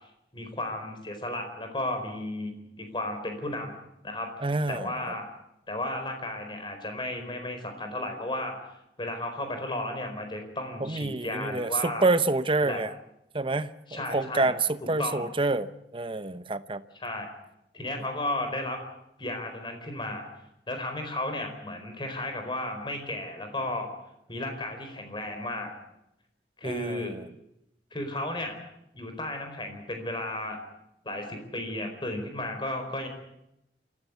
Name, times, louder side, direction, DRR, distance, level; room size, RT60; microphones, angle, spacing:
voice 1, 0.3-3.8 4.0-4.3 4.7-5.2 5.7-8.6 9.0-12.1 12.6-12.8 13.9-14.5 14.8-15.2 17.0-17.3 17.7-18.8 19.2-20.3 20.7-23.9 24.3-25.7 26.6-27.1 27.9-28.6 28.9-30.6 31.0-33.1, left 1 dB, 25° left, 5 dB, 4.6 m, -34 dB
voice 2, 4.4-4.9 10.8-12.9 13.3-13.7 14.1-16.8 26.6-27.3, right 3 dB, 30° right, 13 dB, 0.9 m, -27 dB
27.5 x 14.5 x 8.3 m, 0.83 s
head